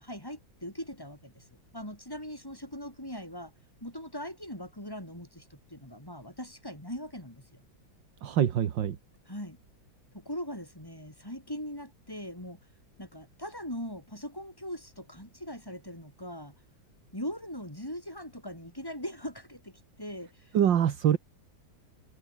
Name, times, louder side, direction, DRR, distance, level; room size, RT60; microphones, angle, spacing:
voice 1, 0.0-1.5 1.7-3.5 3.8-7.4 9.3-9.6 10.1-12.6 13.0-16.5 17.1-20.5, equal, 10° left, 5.8 m, -40 dB
voice 2, 8.2-9.0 20.5-21.2, right 9 dB, 70° right, 2.0 m, -24 dB
omnidirectional pair, 2.1 m